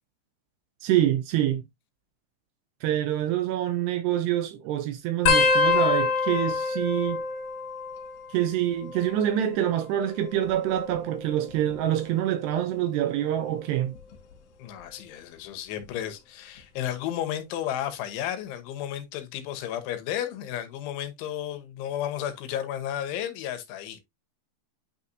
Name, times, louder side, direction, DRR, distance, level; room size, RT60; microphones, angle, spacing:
voice 1, 0.8-1.6 2.8-7.2 8.3-14.0, right 11 dB, 80° right, 2.5 m, -26 dB
sound 1, 5.3-8.4 8.7-9.3 10.3-11.8 12.4-12.7 14.0-14.3 15.8-15.9, left 4 dB, 65° left, 2.1 m, -26 dB
voice 2, 14.6-24.0, left 11 dB, 85° left, 3.5 m, -33 dB
9.1 x 4.2 x 2.6 m
omnidirectional pair, 5.3 m